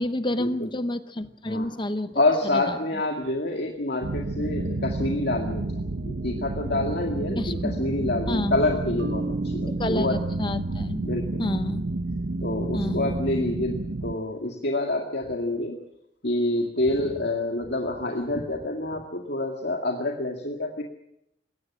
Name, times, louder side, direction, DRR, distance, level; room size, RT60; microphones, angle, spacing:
voice 1, 0.0-2.8 7.4-7.8 8.3-8.6 9.7-11.1 11.4-11.8 12.7-13.1, left 1 dB, 25° left, 11 dB, 0.8 m, -29 dB
voice 2, 2.2-5.6 6.0-10.2 11.0-11.4 12.4-15.8 16.2-20.8, left 2 dB, 60° left, 2 dB, 2.2 m, -27 dB
sound 1, 4.0-14.1, right 2 dB, 65° right, 0.8 m, -30 dB
Marimba xylophone, 9.0-11.0, right 2 dB, 90° right, 2.6 m, -37 dB
21.0 x 17.5 x 7.5 m, 0.79 s
head